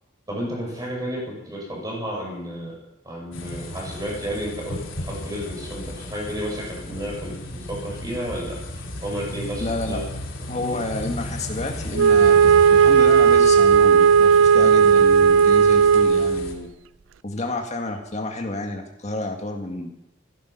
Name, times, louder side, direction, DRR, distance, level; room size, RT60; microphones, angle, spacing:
voice 1, 0.3-2.7 3.0-8.6 9.0-10.0 10.7-10.8 13.7-14.0, equal, 20° right, -2 dB, 6.0 m, -32 dB
sound 1, 3.3-16.5, left 1 dB, 80° left, 2.8 m, -35 dB
voice 2, 9.6-10.0 10.5-16.7 17.2-19.9, left 2 dB, 35° left, 3 dB, 1.9 m, -30 dB
Wind instrument woodwind instrument, 11.9-16.6, right 6 dB, 80° right, 0.4 m, -15 dB
15.0 x 11.5 x 5.8 m, 0.89 s
head